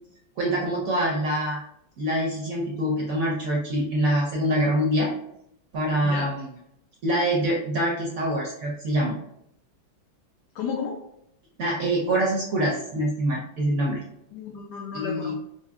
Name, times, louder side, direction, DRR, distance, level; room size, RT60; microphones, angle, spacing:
voice 1, 0.4-1.6 2.0-5.1 5.7-6.4 7.0-9.2 11.6-14.0 14.9-15.3, right 1 dB, 60° right, -3 dB, 0.9 m, -25 dB
voice 2, 6.0-6.3 10.5-11.0 14.3-15.4, left 6 dB, 75° left, 1 dB, 1.0 m, -32 dB
5.4 x 2.1 x 2.4 m, 0.76 s
omnidirectional pair, 2.1 m